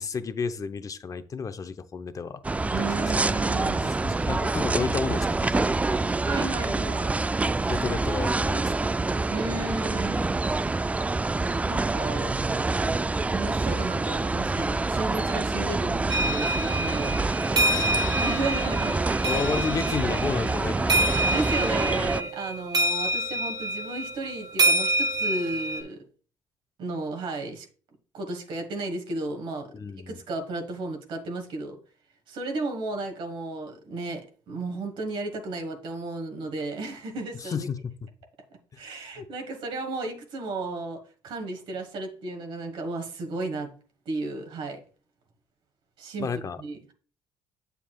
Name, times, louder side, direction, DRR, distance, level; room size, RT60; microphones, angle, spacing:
voice 1, 0.0-2.4 2.8-3.1 3.6-6.0 7.7-9.0 17.6-18.3 19.2-21.2 29.7-30.2 37.4-37.8 39.1-39.3 46.2-46.6, left 5 dB, 40° left, 0.7 m, -32 dB
sound 1, 2.4-22.2, right 3 dB, 15° right, 0.3 m, -26 dB
voice 2, 2.7-4.0 6.3-7.2 9.3-10.3 11.7-12.3 13.3-17.2 17.8-17.9 18.2-19.4 20.0-20.2 20.9-26.0 26.8-27.7 28.1-29.7 30.1-31.8 32.3-37.7 38.8-43.7 44.0-44.8 46.0-46.3 46.6-46.9, right 2 dB, 70° right, 1.4 m, -33 dB
sound 2, 16.1-25.8, right 1 dB, 45° right, 1.4 m, -27 dB
7.2 x 6.8 x 2.3 m
supercardioid pair, 65°, 9 cm